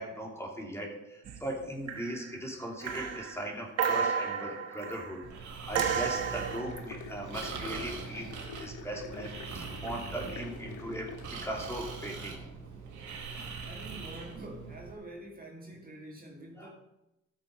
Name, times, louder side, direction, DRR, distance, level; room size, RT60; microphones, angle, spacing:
voice 1, 0.0-8.3 8.6-12.6 13.1-13.7 16.5-16.7, right 1 dB, 10° left, -1 dB, 3.0 m, -39 dB
sound 1, 1.2-1.6 1.9-2.4 2.8-5.2 5.7-6.9 9.8-10.1, right 6 dB, 55° right, 1.3 m, -33 dB
Breathing, 5.2-14.9, right 5 dB, 75° right, 2.3 m, -42 dB
sound 2, 6.1-11.3, left 6 dB, 80° left, 1.4 m, -47 dB
voice 2, 13.6-16.7, right 1 dB, 30° right, -1 dB, 2.3 m, -46 dB
12.5 x 6.8 x 5.4 m, 0.90 s
cardioid pair, 90°, 30 cm